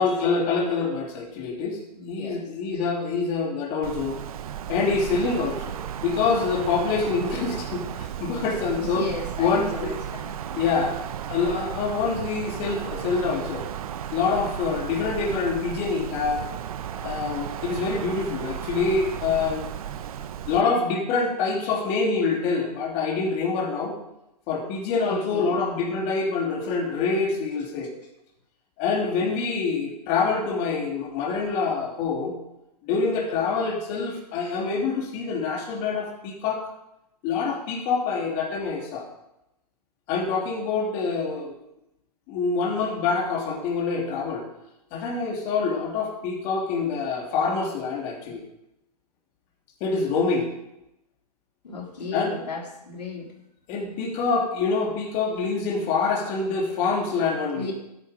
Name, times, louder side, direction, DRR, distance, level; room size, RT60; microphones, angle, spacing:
voice 1, 0.0-1.8 2.1-4.2 4.7-9.0 9.4-9.9 10.5-11.0 11.3-13.7 14.1-16.4 17.0-19.6 20.5-24.0 24.5-27.9 28.8-32.3 32.8-36.7 37.2-39.1 40.1-41.6 42.3-44.4 44.9-48.4 49.8-50.5 52.1-52.3 53.7-57.7, left 4 dB, 35° left, -1 dB, 3.3 m, -26 dB
voice 2, 2.0-2.4 8.8-10.3 22.6-22.7 25.1-25.7 51.6-53.3 57.5-57.7, left 3 dB, 80° left, -1 dB, 3.6 m, -35 dB
Wind, 3.8-20.6, right 10 dB, 60° right, 1.0 m, -34 dB
13.0 x 10.5 x 5.3 m, 0.87 s
hypercardioid pair, 125°, 21 cm